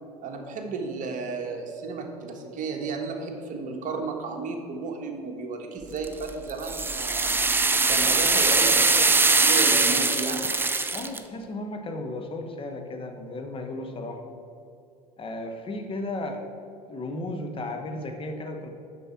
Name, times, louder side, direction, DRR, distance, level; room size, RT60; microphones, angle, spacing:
voice 1, 0.2-10.4, right 3 dB, 40° right, 3 dB, 1.3 m, -33 dB
sound 1, 6.0-11.2, right 3 dB, 10° right, 0.5 m, -22 dB
voice 2, 10.9-14.2 15.2-16.4 16.9-18.7, left 2 dB, 25° left, 4 dB, 1.1 m, -34 dB
6.7 x 6.0 x 5.9 m, 2.7 s
hypercardioid pair, 80°, 20 cm